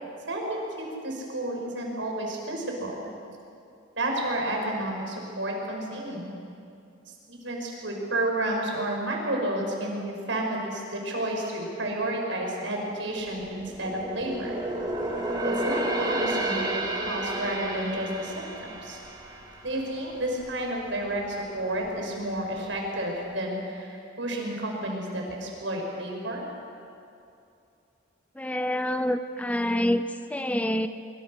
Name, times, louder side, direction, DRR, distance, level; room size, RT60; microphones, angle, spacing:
voice 1, 0.3-3.1 4.0-6.3 7.3-14.5 15.4-19.0 19.6-26.4, right 1 dB, 75° right, 0 dB, 6.2 m, -31 dB
sound 1, 13.1-20.6 21.0-21.2 21.7-22.5 22.8-22.9, right 1 dB, 25° right, 3.1 m, -32 dB
voice 2, 28.4-30.9, left 1 dB, 10° left, 9 dB, 0.7 m, -27 dB
24.5 x 24.5 x 6.8 m, 2.6 s
head